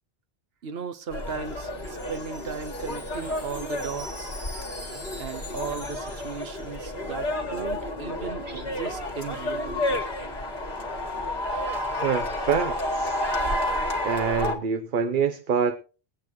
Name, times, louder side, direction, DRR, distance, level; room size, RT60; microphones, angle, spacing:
voice 1, 0.6-4.3 5.2-10.1, right 6 dB, 75° right, 1.2 m, -36 dB
sound 1, 1.1-14.5, left 1 dB, 50° left, 2.0 m, -30 dB
Wind chime, 1.2-7.2, left 1 dB, 15° left, 1.9 m, -45 dB
voice 2, 12.0-13.2 14.0-15.8, right 6 dB, 60° right, 0.9 m, -26 dB
22.5 x 8.5 x 3.0 m
omnidirectional pair, 1.0 m